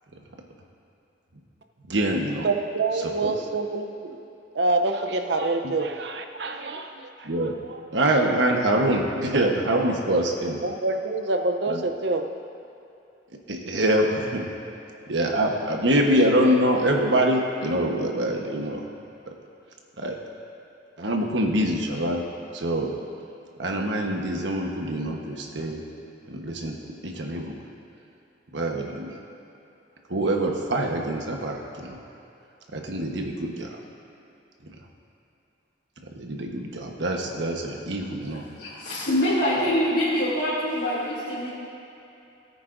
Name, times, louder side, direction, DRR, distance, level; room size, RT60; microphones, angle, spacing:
voice 1, 1.9-2.5 3.2-3.3 7.2-7.6 7.9-10.6 11.7-11.8 13.5-14.5 15.1-18.8 20.0-20.2 21.0-22.2 22.5-22.9 23.6-25.8 26.3-26.8 27.0-27.5 28.5-29.1 30.1-32.0 32.7-33.8 36.1-38.5, right 1 dB, 85° right, 1 dB, 1.2 m, -24 dB
voice 2, 2.4-4.2 4.5-7.8 10.6-12.3, right 3 dB, 65° right, 5 dB, 0.7 m, -27 dB
voice 3, 38.6-41.5, equal, 80° left, -13 dB, 2.7 m, -24 dB
17.5 x 9.2 x 2.6 m, 2.8 s
head